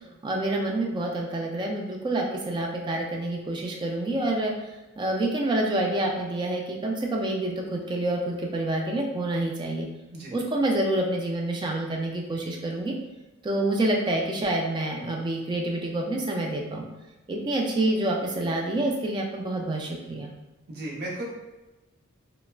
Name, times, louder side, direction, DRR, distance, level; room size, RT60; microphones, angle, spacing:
voice 1, 0.2-4.5 5.0-9.9 10.3-12.9 13.4-16.9 17.3-20.3, right 1 dB, 20° right, 0 dB, 0.3 m, -27 dB
voice 2, 20.7-21.3, right 1 dB, 50° right, -3 dB, 0.7 m, -34 dB
3.2 x 2.0 x 2.3 m, 1.1 s
head